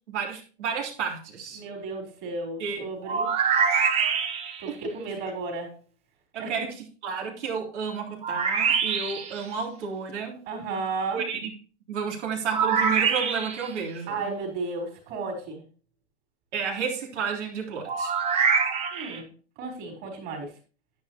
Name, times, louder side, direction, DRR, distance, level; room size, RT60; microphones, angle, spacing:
voice 1, 0.1-1.6 2.6-2.9 4.7-4.8 6.3-6.7 7.0-10.4 11.1-11.5 11.9-14.3 16.5-18.2, right 6 dB, 80° right, 0 dB, 3.7 m, -31 dB
voice 2, 1.5-3.3 4.6-5.8 6.4-6.6 10.5-11.2 14.1-15.6 18.9-20.5, right 3 dB, 40° right, 1 dB, 4.3 m, -33 dB
sound 1, 3.0-4.7 8.2-9.4 12.5-13.7 17.9-19.2, right 6 dB, 20° right, 0.8 m, -25 dB
10.0 x 10.0 x 3.0 m, 0.38 s
supercardioid pair, 155°, 35 cm